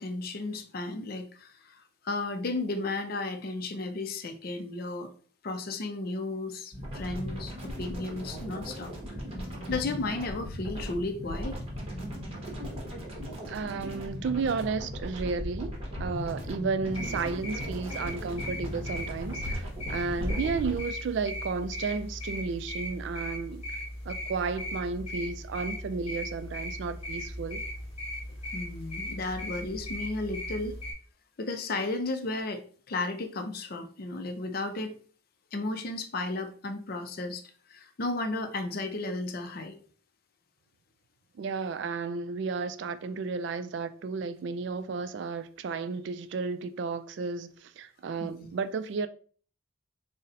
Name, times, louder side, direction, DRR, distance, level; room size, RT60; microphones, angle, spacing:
voice 1, 0.0-5.1 5.4-8.9 9.7-11.6 20.2-20.4 28.5-30.8 31.4-32.6 32.9-35.0 35.5-37.4 37.7-39.7 48.2-48.5, left 2 dB, 45° left, 0.5 m, -34 dB
sound 1, 6.7-20.8, equal, 30° right, 0.9 m, -37 dB
voice 2, 13.5-23.6 24.1-27.6 41.4-49.1, right 4 dB, 55° right, 0.3 m, -33 dB
sound 2, 16.9-30.9, left 1 dB, 30° left, 1.2 m, -38 dB
4.0 x 2.1 x 3.8 m
head